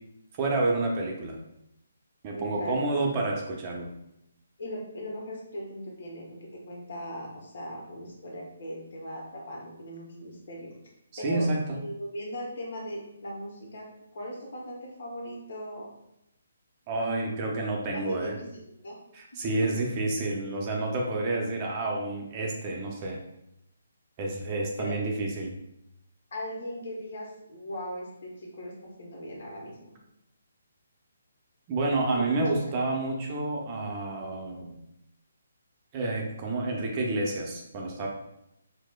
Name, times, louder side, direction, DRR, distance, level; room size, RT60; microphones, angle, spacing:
voice 1, 0.4-1.4 2.2-3.9 11.1-11.6 16.9-18.4 19.1-23.2 24.2-25.6 31.7-34.8 35.9-38.1, right 2 dB, 30° right, -1 dB, 0.5 m, -29 dB
voice 2, 2.3-2.9 4.6-10.7 11.2-15.9 17.9-18.5 18.8-18.9 19.3-19.8 24.8-25.0 26.3-29.9 32.1-32.2, equal, 60° left, -2 dB, 1.0 m, -39 dB
4.6 x 2.0 x 2.3 m, 0.83 s
figure-of-eight pair, 150°, 0 cm